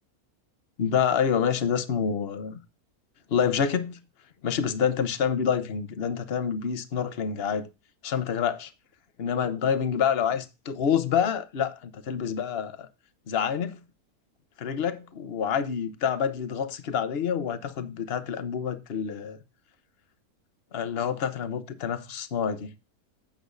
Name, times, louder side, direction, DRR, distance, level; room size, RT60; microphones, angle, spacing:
voice 1, 0.8-2.6 3.3-4.0 4.4-7.7 8.0-8.7 9.2-12.9 13.3-13.8 14.6-19.4 20.7-22.7, left 7 dB, 45° left, 1.1 m, -27 dB
10.5 x 8.5 x 2.6 m
omnidirectional pair, 1.5 m